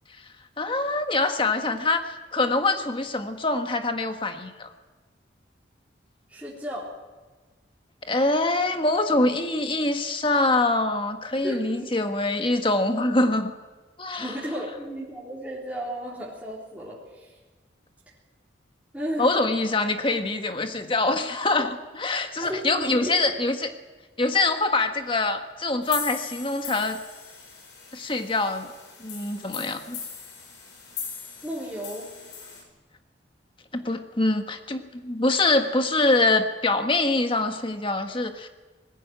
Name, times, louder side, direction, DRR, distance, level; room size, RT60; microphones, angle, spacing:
voice 1, 0.6-4.7 8.0-13.5 14.0-14.3 19.2-23.7 24.2-27.0 27.9-28.7 29.0-30.0 33.7-38.5, left 2 dB, 25° left, 6 dB, 1.5 m, -24 dB
voice 2, 6.3-6.9 11.4-11.9 14.2-17.3 18.9-19.3 22.4-23.2 31.4-32.1, equal, 5° right, -7 dB, 3.7 m, -34 dB
sound 1, 25.8-32.6, left 6 dB, 70° left, 6.0 m, -39 dB
20.5 x 15.5 x 8.9 m, 1.3 s
head